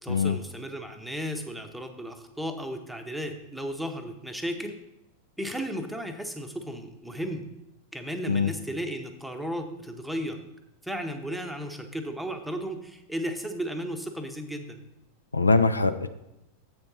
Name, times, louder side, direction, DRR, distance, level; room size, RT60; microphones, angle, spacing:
voice 1, 0.0-4.8 5.4-7.5 7.9-10.4 10.8-14.8, equal, ahead, 5 dB, 0.8 m, -34 dB
voice 2, 15.3-16.1, left 4 dB, 80° left, 10 dB, 0.4 m, -22 dB
7.8 x 4.4 x 5.4 m, 0.89 s
figure-of-eight pair, 90°, 0 cm